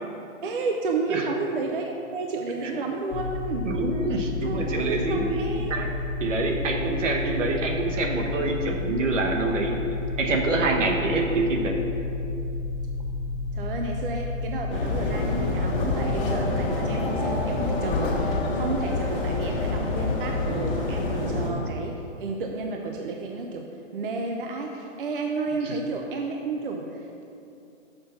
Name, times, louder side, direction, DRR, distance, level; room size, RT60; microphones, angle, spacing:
voice 1, 0.4-3.7 4.4-5.9 13.5-23.7 23.9-27.3, right 3 dB, 45° right, 2 dB, 0.5 m, -31 dB
sound 1, 3.1-16.2, left 3 dB, 65° left, 0.5 m, -31 dB
voice 2, 3.6-5.9 6.2-9.8 10.2-11.8 21.2-21.4 25.6-25.8, right 3 dB, 70° right, 2 dB, 1.3 m, -26 dB
sound 2, 14.7-21.5, left 2 dB, 45° left, 1.6 m, -27 dB
6.6 x 5.3 x 5.7 m, 2.7 s
hypercardioid pair, 170°, 39 cm